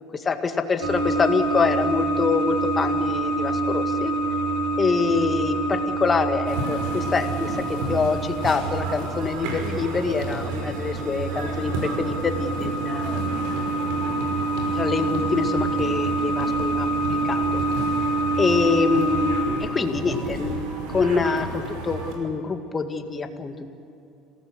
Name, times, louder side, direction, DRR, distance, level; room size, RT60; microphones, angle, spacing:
voice 1, 0.0-4.1 4.8-7.6 7.9-13.2 14.7-17.4 18.4-23.7, left 4 dB, 25° left, 6 dB, 1.9 m, -25 dB
sound 1, 0.8-19.4, right 3 dB, 60° right, 4.5 m, -26 dB
sound 2, 6.5-22.1, right 2 dB, 80° right, 6.0 m, -33 dB
27.5 x 18.0 x 8.1 m, 2.8 s
cardioid pair, 130°, 0 cm